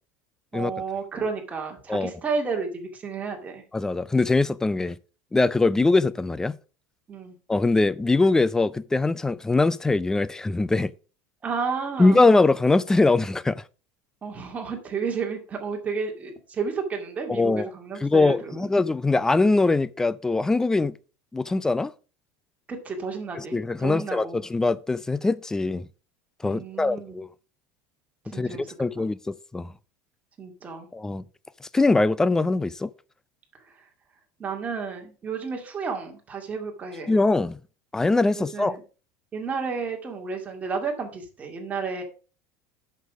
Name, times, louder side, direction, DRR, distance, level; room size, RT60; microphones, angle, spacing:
voice 1, 0.5-3.6 7.1-7.4 11.4-12.2 14.2-18.7 22.7-24.4 26.4-27.2 28.2-29.1 30.4-30.9 33.7-33.8 34.4-37.2 38.4-38.8 39.3-42.0, right 5 dB, 20° right, 2.2 m, -32 dB
voice 2, 3.7-5.0 5.3-6.5 7.5-10.9 12.0-13.6 17.3-17.7 18.0-21.0 21.3-21.9 23.4-25.9 26.4-27.3 28.3-29.7 30.9-31.2 31.7-32.9 37.1-37.6 37.9-38.7, left 3 dB, 5° left, 0.3 m, -22 dB
8.0 x 6.7 x 5.0 m
cardioid pair, 155°, 8 cm